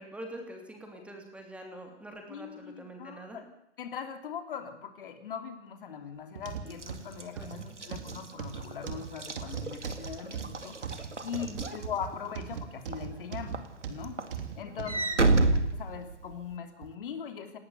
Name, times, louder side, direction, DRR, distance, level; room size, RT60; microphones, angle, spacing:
voice 1, 0.0-3.4 7.3-7.8 11.5-11.7 14.9-15.3, right 1 dB, 5° right, 3 dB, 3.1 m, -45 dB
voice 2, 2.3-3.4 3.8-14.2 14.6-15.0 15.7-17.6, left 7 dB, 50° left, 7 dB, 3.0 m, -40 dB
sound 1, 6.4-15.5 16.0-16.2 16.8-16.9, right 7 dB, 50° right, 3.1 m, -39 dB
Walk footsteps / Slam, 6.7-12.4 12.9-13.2 13.5-16.5, right 2 dB, 85° right, 2.3 m, -31 dB
19.0 x 18.5 x 8.2 m, 0.80 s
figure-of-eight pair, 130°, 35 cm